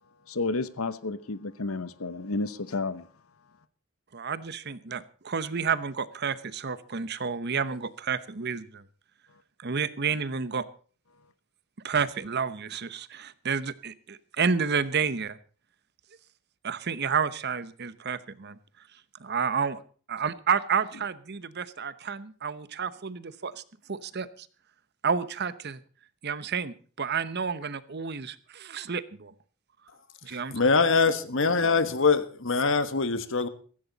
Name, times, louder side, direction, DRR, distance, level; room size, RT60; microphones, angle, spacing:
voice 1, 0.3-3.1, left 3 dB, 80° left, 1.0 m, -31 dB
voice 2, 4.1-8.8 9.6-10.6 11.8-15.4 16.6-18.6 19.2-19.8 20.1-23.6 23.9-24.5 25.0-25.8 26.2-29.3 30.2-30.5, right 6 dB, 50° right, 0.9 m, -30 dB
voice 3, 30.3-33.5, left 4 dB, 60° left, 1.4 m, -24 dB
16.0 x 15.0 x 4.0 m
head